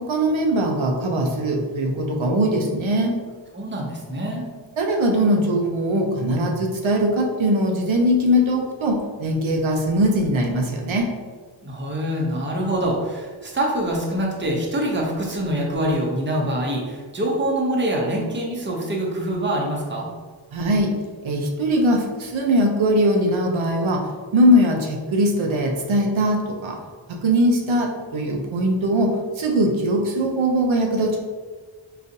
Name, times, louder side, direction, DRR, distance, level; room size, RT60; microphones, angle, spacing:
voice 1, 0.0-3.2 4.8-11.1 20.5-20.9 21.2-24.1 24.3-26.8 27.1-31.2, equal, 80° right, 1 dB, 0.6 m, -21 dB
voice 2, 3.5-4.4 11.6-20.1, right 1 dB, 25° right, -1 dB, 0.7 m, -25 dB
3.8 x 2.4 x 2.6 m, 1.4 s
wide cardioid pair, 50°, 47 cm